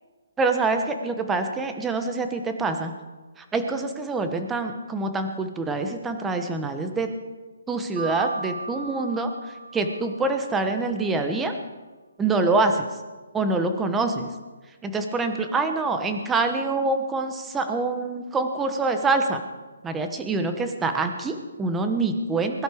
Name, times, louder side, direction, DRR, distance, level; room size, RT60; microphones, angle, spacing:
voice 1, 0.4-2.9 3.4-7.1 7.7-9.3 9.7-11.5 12.2-12.9 13.3-14.3 14.8-19.4 19.8-22.6, right 3 dB, 10° right, 6 dB, 1.1 m, -25 dB
Mallet percussion, 8.0-10.7, right 2 dB, 60° right, 2.7 m, -37 dB
21.0 x 11.5 x 5.1 m, 1.3 s
hypercardioid pair, 165°, 0 cm